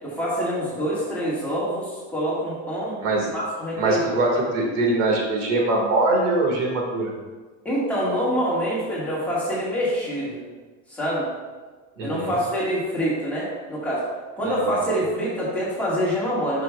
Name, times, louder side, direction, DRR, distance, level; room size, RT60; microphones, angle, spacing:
voice 1, 0.0-3.0 3.3-4.0 7.6-10.4 10.9-11.3 12.0-14.0 14.4-16.6, equal, 5° left, -9 dB, 1.7 m, -25 dB
voice 2, 3.8-7.1 12.0-12.4, right 2 dB, 75° right, 0 dB, 2.0 m, -22 dB
9.6 x 6.0 x 2.4 m, 1.3 s
supercardioid pair, 165°, 37 cm